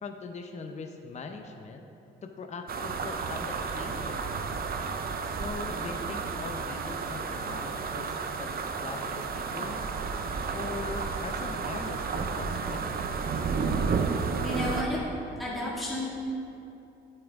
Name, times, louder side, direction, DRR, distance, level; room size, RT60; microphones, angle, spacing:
voice 1, 0.0-1.8 2.2-4.2 5.3-8.5 8.8-9.9 10.5-13.0, left 4 dB, 35° left, 5 dB, 0.6 m, -41 dB
sound 1, 2.7-14.8, right 5 dB, 50° right, 0.7 m, -32 dB
voice 2, 14.4-15.0 15.4-16.1, left 1 dB, ahead, -9 dB, 1.9 m, -31 dB
9.0 x 8.7 x 3.5 m, 2.9 s
cardioid pair, 90°, 20 cm